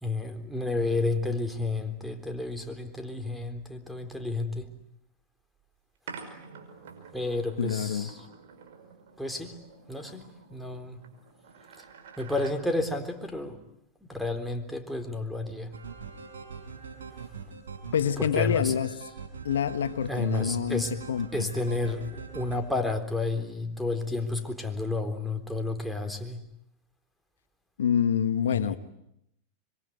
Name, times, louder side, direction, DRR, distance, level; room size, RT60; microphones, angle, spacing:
voice 1, 0.0-4.7 7.1-8.2 9.2-9.6 9.9-11.0 12.2-13.6 14.0-15.7 18.2-18.7 20.1-21.0 21.3-26.4 28.5-28.8, left 2 dB, ahead, 3 dB, 3.9 m, -31 dB
sound 1, 6.1-12.6, right 5 dB, 70° right, 5.7 m, -48 dB
voice 2, 7.6-8.1 17.9-18.9 19.4-21.5 27.8-28.7, left 8 dB, 85° left, 12 dB, 1.2 m, -27 dB
sound 2, 15.7-22.6, right 6 dB, 90° right, 5.6 m, -42 dB
26.0 x 23.5 x 9.4 m, 0.79 s
hypercardioid pair, 100°, 0 cm